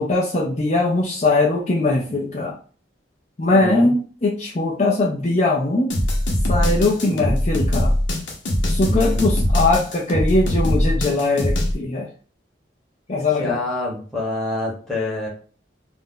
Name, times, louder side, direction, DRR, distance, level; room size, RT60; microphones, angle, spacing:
voice 1, 0.0-2.6 3.4-5.9 6.5-7.9 8.6-12.1 13.1-13.6, left 2 dB, 40° left, -3 dB, 0.5 m, -20 dB
voice 2, 3.5-3.9 7.1-7.3 8.9-9.3 13.4-15.3, left 1 dB, ahead, -5 dB, 1.0 m, -27 dB
sound 1, 5.9-11.7, left 1 dB, 85° left, 0.8 m, -21 dB
2.5 x 2.1 x 3.7 m, 0.41 s
head